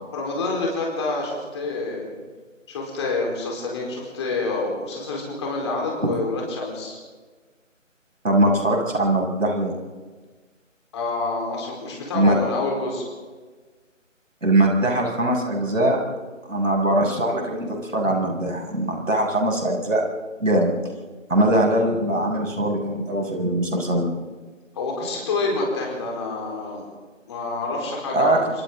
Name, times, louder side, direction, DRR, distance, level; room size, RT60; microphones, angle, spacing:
voice 1, 0.1-2.2 2.7-7.0 10.9-13.0 24.7-26.9 27.3-28.5, left 3 dB, 20° left, -1 dB, 4.6 m, -27 dB
voice 2, 8.2-9.7 12.1-12.4 14.4-16.0 16.5-20.0 20.4-20.7 21.3-24.1 28.1-28.4, right 1 dB, 80° right, 1 dB, 6.9 m, -21 dB
27.0 x 25.5 x 4.0 m, 1.4 s
figure-of-eight pair, 160°, 39 cm